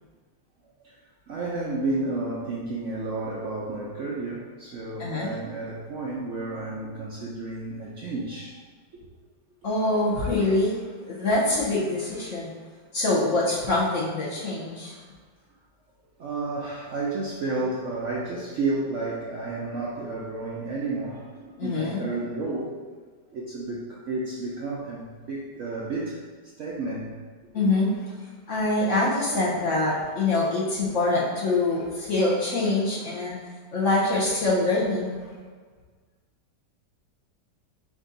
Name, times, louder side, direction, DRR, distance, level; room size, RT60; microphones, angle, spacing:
voice 1, 1.3-8.6 8.9-9.0 16.2-22.8 23.3-26.2 26.6-27.1, right 2 dB, 70° right, -5 dB, 0.7 m, -31 dB
voice 2, 9.6-12.5 12.9-15.0 21.6-22.1 27.5-27.9 28.5-33.4 33.7-35.2, left 2 dB, 55° left, -5 dB, 1.0 m, -24 dB
5.0 x 2.6 x 3.8 m, 1.5 s
omnidirectional pair, 1.9 m